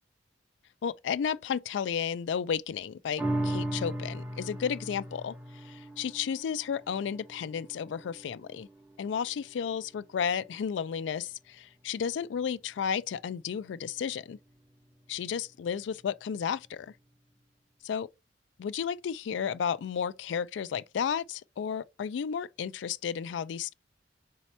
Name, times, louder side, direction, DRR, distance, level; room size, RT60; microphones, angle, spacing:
voice 1, 0.8-5.3 5.7-8.7 9.0-14.4 15.1-16.9 17.9-18.1 18.6-23.7, left 7 dB, 75° left, 0.3 m, -33 dB
sound 1, 3.2-9.8 10.3-10.4, right 1 dB, 5° right, 0.7 m, -37 dB
4.1 x 2.8 x 4.4 m
head